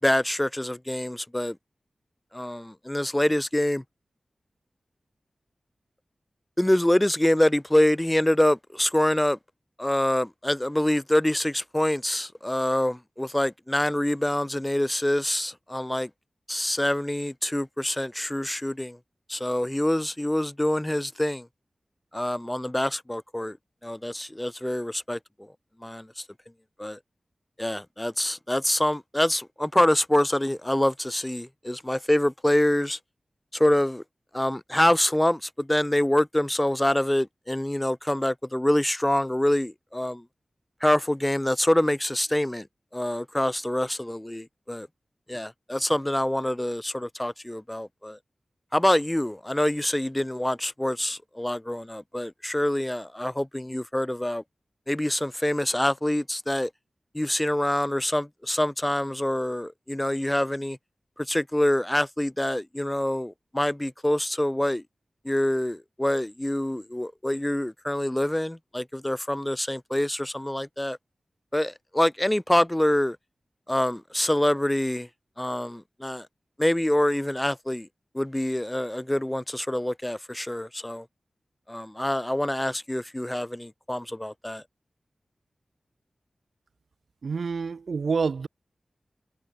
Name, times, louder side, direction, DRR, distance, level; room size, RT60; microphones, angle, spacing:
voice 1, 0.0-1.6 2.3-3.8 6.6-9.4 9.8-16.1 16.5-19.0 19.3-21.5 22.1-23.6 23.8-25.5 25.8-26.2 26.8-27.0 27.6-33.0 33.5-34.0 34.3-40.2 40.8-42.7 42.9-44.9 45.3-48.2 48.7-54.4 54.9-56.7 57.1-60.8 61.2-64.8 65.2-71.0 71.5-73.2 73.7-75.1 75.4-76.3 76.6-77.9 78.1-81.1 81.7-84.6, left 1 dB, 15° left, 6.0 m, -25 dB
voice 2, 87.2-88.5, right 5 dB, 85° right, 4.0 m, -27 dB
cardioid pair, 55°, 0 cm